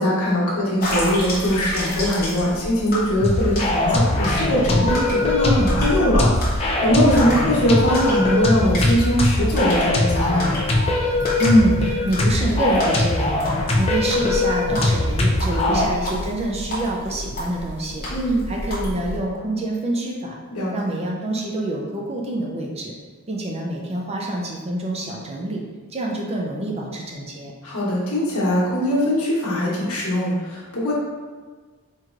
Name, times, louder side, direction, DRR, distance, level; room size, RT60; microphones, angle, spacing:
voice 1, 0.0-10.6 15.5-15.9 18.1-18.4 20.5-20.7 27.6-30.9, equal, 85° left, -6 dB, 1.2 m, -21 dB
sound 1, 0.8-19.2, left 1 dB, 45° left, 1.1 m, -30 dB
sound 2, 3.2-15.9, left 2 dB, 30° left, 0.5 m, -21 dB
voice 2, 11.4-18.0 18.5-20.3 20.7-22.9 23.3-25.6 25.9-27.5, right 1 dB, 30° right, -1 dB, 0.5 m, -25 dB
4.5 x 3.0 x 2.5 m, 1.4 s
head